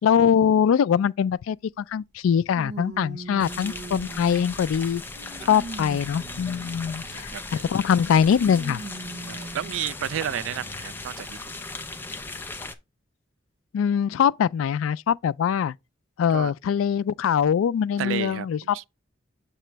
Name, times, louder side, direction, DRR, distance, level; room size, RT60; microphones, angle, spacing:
voice 1, 0.0-5.0 5.5-7.3 7.7-8.8 13.7-15.8 16.2-18.9, left 8 dB, 90° left, 0.3 m, -22 dB
sound 1, 1.3-1.4 2.5-4.6 5.1-7.2 8.4-9.8 10.5-10.6 11.7-11.8, right 2 dB, 55° right, 0.7 m, -40 dB
sound 2, 3.4-12.7, left 3 dB, 10° left, 0.5 m, -37 dB
voice 2, 6.7-7.9 9.2-11.5 16.3-16.5 18.0-18.5 18.7-18.8, right 9 dB, 75° right, 0.3 m, -32 dB
7.5 x 3.0 x 4.5 m
head